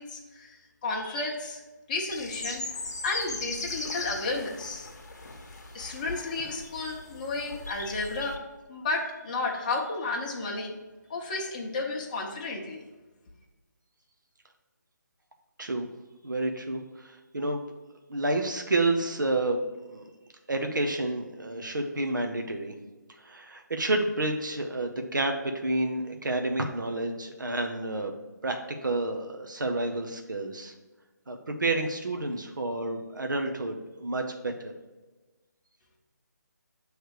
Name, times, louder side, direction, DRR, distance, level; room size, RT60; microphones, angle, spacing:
voice 1, 0.0-1.6 1.9-2.7 3.0-4.9 5.7-8.4 8.7-10.8 11.1-12.8, left 3 dB, 25° left, -1 dB, 0.7 m, -32 dB
sound 1, 2.1-8.4, left 3 dB, 60° left, 0.9 m, -38 dB
voice 2, 16.2-17.6 18.1-19.6 19.9-20.0 20.5-22.7 23.2-28.1 28.4-30.7 31.3-34.7, right 2 dB, 85° right, 4 dB, 0.7 m, -30 dB
6.5 x 3.2 x 4.7 m, 1.2 s
figure-of-eight pair, 160°, 10 cm